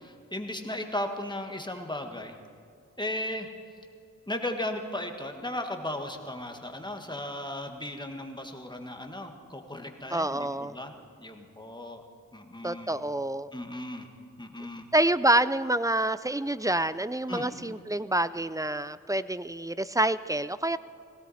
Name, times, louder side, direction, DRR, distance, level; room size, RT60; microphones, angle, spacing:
voice 1, 0.0-2.4 3.0-3.5 4.3-10.9 11.2-12.0 12.3-12.9 13.5-14.1 14.4-14.9 17.3-17.5, left 1 dB, 15° left, 4 dB, 1.6 m, -36 dB
voice 2, 10.1-10.7 12.6-13.5 14.9-20.8, right 1 dB, 10° right, 15 dB, 0.4 m, -27 dB
18.0 x 16.5 x 4.2 m, 2.4 s
cardioid pair, 50°, 31 cm